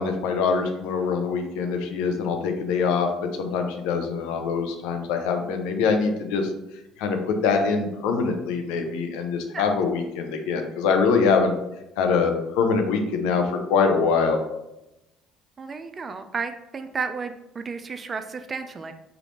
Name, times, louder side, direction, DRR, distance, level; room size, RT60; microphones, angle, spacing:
voice 1, 0.0-6.5 7.0-11.5 12.0-14.4, left 5 dB, 75° left, 4 dB, 0.5 m, -24 dB
voice 2, 15.6-18.9, right 5 dB, 35° right, 9 dB, 0.3 m, -32 dB
3.5 x 2.4 x 3.0 m, 0.89 s
hypercardioid pair, 65°, 0 cm